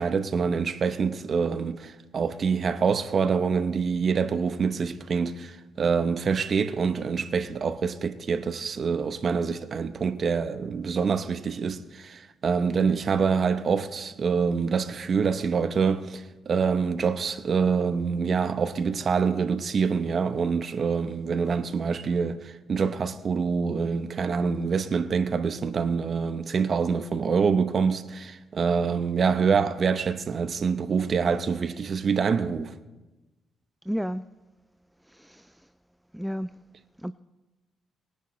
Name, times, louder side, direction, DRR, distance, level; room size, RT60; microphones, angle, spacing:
voice 1, 0.0-32.7, right 5 dB, 50° right, 0.8 m, -26 dB
voice 2, 33.9-34.3 35.1-35.7 36.1-36.5 37.0-37.1, equal, ahead, 0.3 m, -32 dB
21.0 x 10.0 x 3.2 m
cardioid pair, 90°, 0 cm